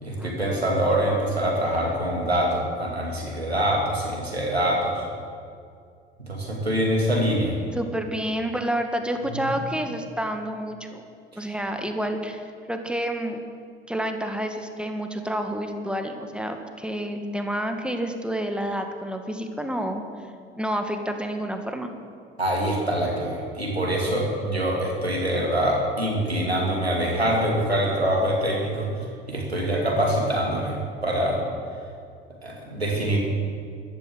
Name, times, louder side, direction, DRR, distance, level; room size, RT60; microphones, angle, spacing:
voice 1, 0.0-5.1 6.3-7.6 9.3-9.4 22.4-28.9 29.3-31.4 32.4-33.2, right 1 dB, 85° right, -2 dB, 2.8 m, -24 dB
voice 2, 7.7-11.0 11.4-13.4 13.9-20.0 20.6-21.9, right 1 dB, 5° right, 5 dB, 2.0 m, -29 dB
14.5 x 12.5 x 7.7 m, 2.3 s
figure-of-eight pair, 60°, 31 cm